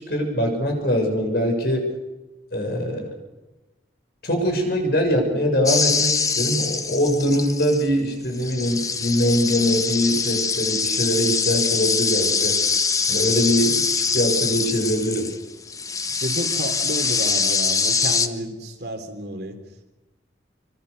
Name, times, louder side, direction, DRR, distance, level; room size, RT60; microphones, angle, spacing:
voice 1, 0.0-1.9 2.5-3.1 4.2-12.6 13.1-15.3, equal, 60° left, 4 dB, 7.0 m, -22 dB
voice 2, 2.7-3.0 16.1-19.6, right 1 dB, 60° right, 6 dB, 3.6 m, -31 dB
sound 1, 5.7-7.9 8.3-15.4 15.7-18.3, left 5 dB, 20° left, 1.1 m, -23 dB
27.0 x 24.5 x 6.8 m, 1.1 s
head